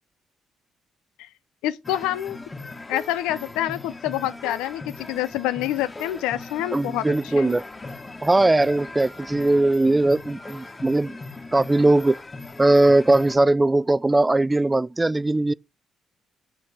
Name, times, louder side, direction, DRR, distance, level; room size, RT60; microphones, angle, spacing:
voice 1, 1.6-2.4 2.9-7.6, left 13 dB, 70° left, 0.6 m, -27 dB
sound 1, 1.8-13.4, left 3 dB, 25° left, 1.7 m, -39 dB
voice 2, 6.7-7.6 8.2-11.2 11.5-12.2 12.6-15.5, right 2 dB, 20° right, 0.4 m, -19 dB
8.8 x 4.6 x 7.2 m
figure-of-eight pair, 45°, 0 cm